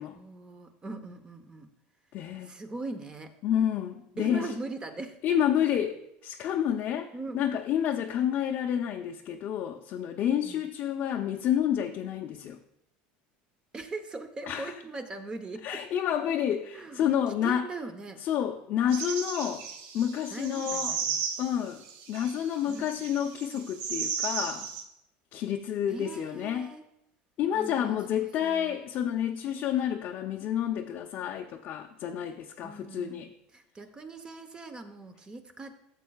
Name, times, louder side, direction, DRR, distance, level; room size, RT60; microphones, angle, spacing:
voice 1, 0.1-1.7 2.4-3.3 4.2-5.2 7.1-7.4 10.4-10.7 13.7-15.8 16.7-17.1 17.4-18.2 20.3-21.2 22.7-22.8 25.9-26.8 27.5-28.8 32.6-35.8, right 3 dB, 20° right, 7 dB, 0.9 m, -40 dB
voice 2, 2.1-2.5 3.4-4.5 5.2-6.0 6.2-12.6 14.5-14.7 15.6-17.7 18.2-19.7 19.9-21.0 21.4-24.7 25.3-26.7 27.4-33.3, left 9 dB, 50° left, 1 dB, 0.6 m, -29 dB
sound 1, 18.9-24.8, right 6 dB, 75° right, 1.2 m, -35 dB
14.0 x 7.5 x 2.4 m, 0.80 s
supercardioid pair, 130°, 4 cm